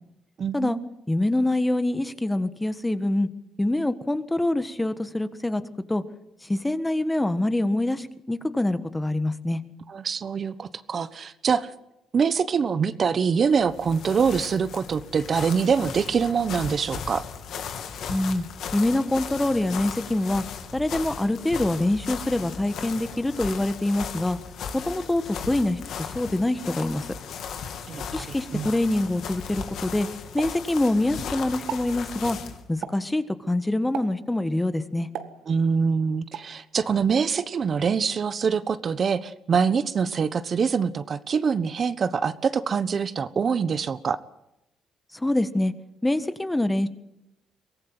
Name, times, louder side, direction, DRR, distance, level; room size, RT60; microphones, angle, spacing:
voice 1, 0.4-0.8 9.9-11.7 12.1-17.2 27.9-28.3 28.5-28.7 35.5-44.2, right 6 dB, 50° right, 13 dB, 1.1 m, -24 dB
voice 2, 1.1-3.3 3.6-5.6 5.9-6.0 6.4-9.6 18.1-18.4 18.7-20.4 20.7-24.4 24.7-27.1 28.1-30.1 30.3-32.4 32.7-35.1 45.1-45.7 46.0-46.9, left 1 dB, 10° left, 11 dB, 1.6 m, -25 dB
sound 1, 13.5-32.6, left 6 dB, 75° left, 2.9 m, -37 dB
Explosion, 30.4-31.2 31.5-32.0 32.8-33.2 33.9-34.3 35.1-35.8 36.3-36.6, right 9 dB, 85° right, 1.7 m, -37 dB
23.5 x 17.5 x 7.8 m, 0.86 s
cardioid pair, 90°, 0 cm